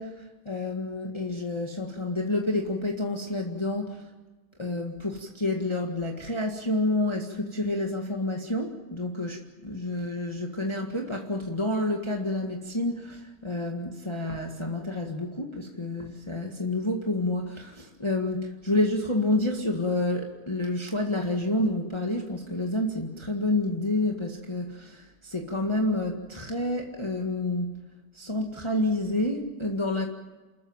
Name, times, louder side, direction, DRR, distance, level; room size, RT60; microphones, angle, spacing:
voice 1, 0.0-4.1 4.6-27.8 28.1-30.1, left 2 dB, 15° left, 1 dB, 1.9 m, -29 dB
29.0 x 14.0 x 9.0 m, 1.3 s
omnidirectional pair, 1.8 m